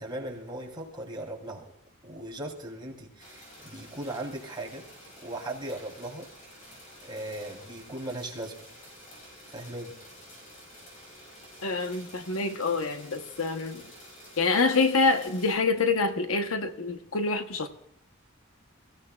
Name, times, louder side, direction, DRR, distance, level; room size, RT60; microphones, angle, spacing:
voice 1, 0.0-1.7 2.0-4.9 5.2-6.3 7.0-8.7 9.5-10.0, right 1 dB, 20° right, 3.6 m, -38 dB
sound 1, 3.2-15.5, equal, 35° left, 5.6 m, -50 dB
voice 2, 11.6-13.8 14.4-17.7, left 3 dB, 80° left, 1.0 m, -26 dB
27.5 x 16.0 x 2.4 m
head